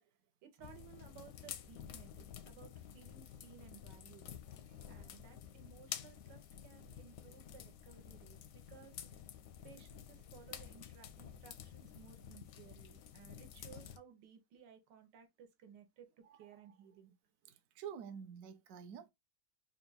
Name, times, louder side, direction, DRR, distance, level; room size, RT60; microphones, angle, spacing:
voice 1, 0.4-4.3 4.9-9.0 9.6-17.1, right 7 dB, 85° right, 1.5 m, -59 dB
sound 1, 0.6-14.0, left 9 dB, 70° left, 0.8 m, -51 dB
voice 2, 4.7-5.1 7.0-7.1 16.3-16.5 17.5-19.1, right 8 dB, 65° right, 0.9 m, -50 dB
3.8 x 2.3 x 3.8 m
omnidirectional pair, 1.9 m